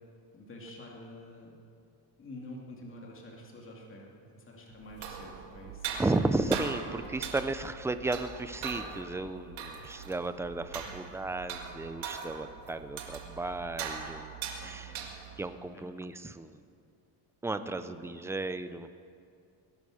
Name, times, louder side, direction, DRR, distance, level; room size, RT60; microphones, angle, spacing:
voice 1, 0.3-1.5 2.2-5.9 10.7-11.0 14.6-15.1 15.7-15.9 17.5-18.3, left 1 dB, 25° left, -1 dB, 2.5 m, -48 dB
sound 1, 4.8-15.5, right 6 dB, 85° right, 2.0 m, -41 dB
voice 2, 6.0-14.9 15.4-16.6 17.4-18.9, right 2 dB, 5° right, 10 dB, 0.4 m, -34 dB
19.5 x 11.5 x 6.3 m, 2.3 s
cardioid pair, 150°, 45 cm